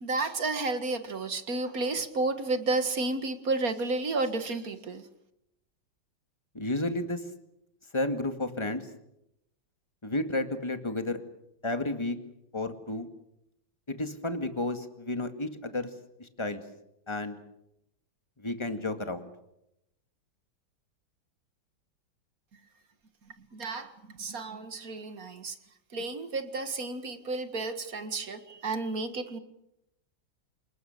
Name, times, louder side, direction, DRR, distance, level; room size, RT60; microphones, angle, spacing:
voice 1, 0.0-5.1 23.4-25.6 25.9-29.4, right 3 dB, 50° right, 10 dB, 2.2 m, -32 dB
voice 2, 6.5-7.2 7.9-8.9 10.0-11.2 11.6-12.2 12.5-13.1 13.9-15.9 16.2-16.6 17.1-17.4 18.4-19.3, left 2 dB, 15° left, 7 dB, 1.9 m, -32 dB
28.0 x 20.5 x 6.8 m, 0.82 s
omnidirectional pair, 2.1 m